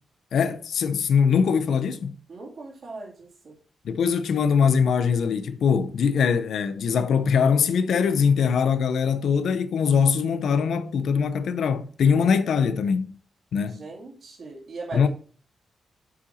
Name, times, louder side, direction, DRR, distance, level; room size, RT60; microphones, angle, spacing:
voice 1, 0.3-2.1 3.8-13.1 13.5-13.8 14.9-15.1, left 6 dB, 75° left, 0.7 m, -22 dB
voice 2, 2.3-3.5 13.7-15.1, right 3 dB, 50° right, 2.7 m, -39 dB
7.8 x 5.7 x 4.0 m
wide cardioid pair, 150°, 0 cm